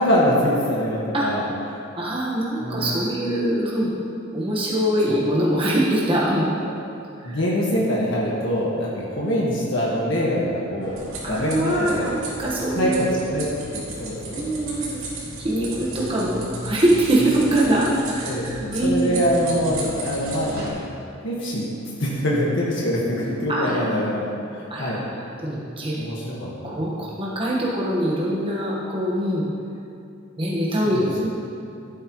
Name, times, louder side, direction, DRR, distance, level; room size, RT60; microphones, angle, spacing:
voice 1, 0.0-1.4 1.7-1.8 2.6-2.9 5.1-5.2 6.6-6.7 7.2-11.0 11.3-12.1 12.7-13.5 13.7-14.4 15.6-15.7 18.2-20.8 21.2-21.7 22.0-25.0 25.9-26.9 30.8-31.0, equal, 60° left, -5 dB, 1.6 m, -24 dB
voice 2, 2.0-3.9 4.3-6.5 7.2-7.4 11.2-13.1 14.3-15.0 15.4-19.2 23.5-23.8 24.7-26.0 26.6-29.4 30.4-31.3, right 1 dB, 25° right, -6 dB, 1.4 m, -23 dB
sound 1, 10.8-20.7, right 2 dB, 75° right, 2.6 m, -35 dB
14.5 x 8.9 x 3.1 m, 2.6 s
head